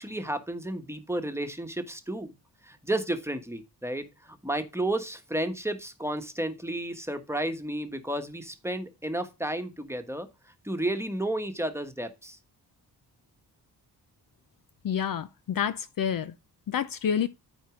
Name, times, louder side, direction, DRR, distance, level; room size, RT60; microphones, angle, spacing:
voice 1, 0.0-2.3 2.6-10.3 10.6-12.4, right 1 dB, 5° right, 1.3 m, -32 dB
voice 2, 14.8-16.3 16.7-17.3, left 8 dB, 55° left, 0.6 m, -28 dB
9.1 x 4.5 x 4.9 m
cardioid pair, 70°, 40 cm